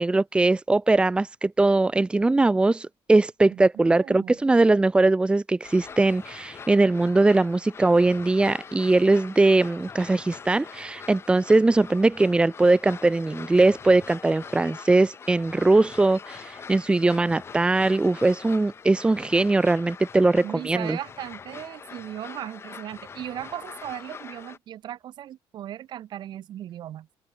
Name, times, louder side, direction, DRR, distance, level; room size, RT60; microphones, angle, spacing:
voice 1, 0.0-21.0, right 2 dB, 10° right, 1.4 m, -21 dB
voice 2, 3.5-4.4 20.4-27.1, right 11 dB, 50° right, 4.6 m, -37 dB
sound 1, 5.6-24.6, left 6 dB, 25° left, 4.2 m, -43 dB
open air
cardioid pair, 160°, 10 cm